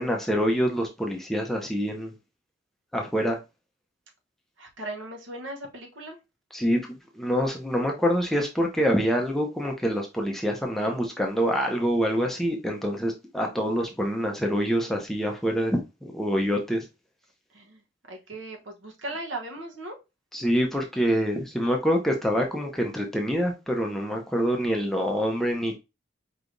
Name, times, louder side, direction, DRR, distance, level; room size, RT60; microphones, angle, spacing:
voice 1, 0.0-2.1 2.9-3.4 6.5-16.8 20.3-25.8, equal, ahead, 0.6 m, -26 dB
voice 2, 4.6-6.2 17.5-17.8 18.1-20.0, right 2 dB, 80° right, 1.1 m, -37 dB
4.7 x 3.3 x 2.6 m
head